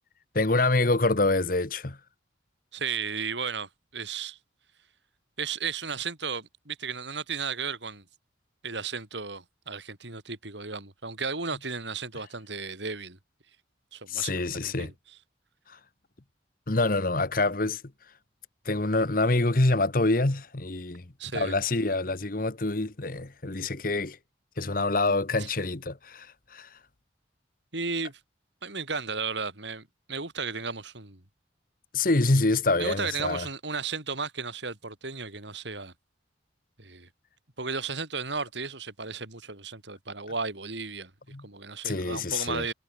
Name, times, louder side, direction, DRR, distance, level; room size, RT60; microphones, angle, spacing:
voice 1, 0.3-2.0 14.1-14.9 15.7-15.8 16.7-17.8 18.6-21.1 21.3-24.2 24.6-26.8 31.9-33.5 41.3-41.5 41.8-42.7, left 2 dB, 50° left, 1.2 m, -26 dB
voice 2, 2.7-4.4 5.4-8.0 8.6-13.2 13.9-14.9 21.2-21.5 25.4-25.5 27.7-28.2 28.6-31.2 32.8-35.9 36.8-37.1 37.6-41.1 41.4-42.7, right 5 dB, 75° right, 4.6 m, -34 dB
head